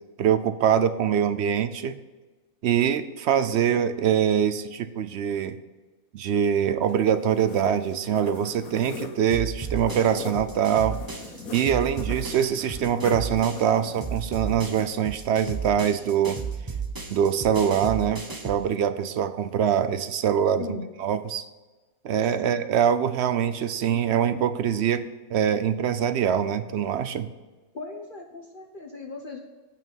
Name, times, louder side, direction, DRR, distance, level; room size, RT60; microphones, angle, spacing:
voice 1, 0.2-2.0 2.6-5.6 6.1-11.0 11.5-16.4 17.1-20.7 21.0-21.5 22.0-25.0 25.3-27.3, right 8 dB, 65° right, 12 dB, 0.7 m, -24 dB
sound 1, 6.8-14.8, left 3 dB, 75° left, 1.8 m, -41 dB
sound 2, 9.3-13.7 14.0-18.6, right 5 dB, 20° right, 0.6 m, -34 dB
voice 2, 20.6-20.9 22.4-22.7 27.7-29.4, left 3 dB, 40° left, 2 dB, 1.0 m, -38 dB
9.0 x 5.9 x 7.0 m, 1.3 s
omnidirectional pair, 1.5 m